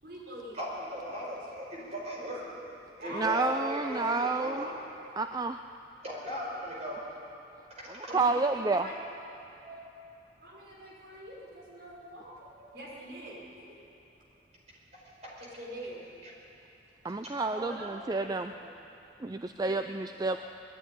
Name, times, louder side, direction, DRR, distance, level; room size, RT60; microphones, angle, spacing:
voice 1, 0.0-0.6 1.0-1.5 3.0-3.3 3.7-4.8 8.1-9.0 10.4-14.0 15.6-16.1 17.5-18.7 19.6-19.8 20.3-20.4, right 1 dB, 60° right, -4 dB, 5.3 m, -44 dB
voice 2, 0.5-2.4 3.0-4.7 6.0-7.0 7.8-8.1 8.9-9.1 9.6-9.8 14.9-15.5 16.2-16.3 17.2-17.4, equal, 35° right, -3 dB, 5.2 m, -39 dB
voice 3, 3.1-4.7 5.2-5.6 8.1-8.9 17.0-18.5 19.2-20.4, right 3 dB, 20° right, 8 dB, 0.4 m, -29 dB
20.0 x 13.5 x 10.0 m, 3.0 s
head